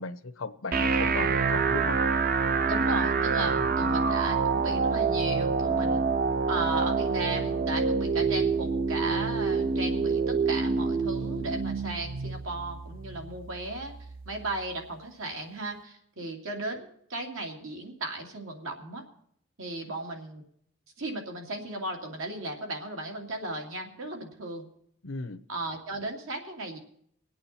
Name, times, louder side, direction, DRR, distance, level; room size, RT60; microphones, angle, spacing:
voice 1, 0.0-2.0 3.6-3.9 25.0-25.4, left 3 dB, 85° left, 9 dB, 0.8 m, -37 dB
sound 1, 0.7-14.7, right 4 dB, 45° right, 0.6 m, -27 dB
voice 2, 2.6-6.0 6.5-14.0 14.3-19.0 19.6-20.4 21.0-24.7 25.5-26.8, right 2 dB, 90° right, 1 dB, 2.7 m, -35 dB
24.5 x 8.7 x 4.3 m, 0.67 s
head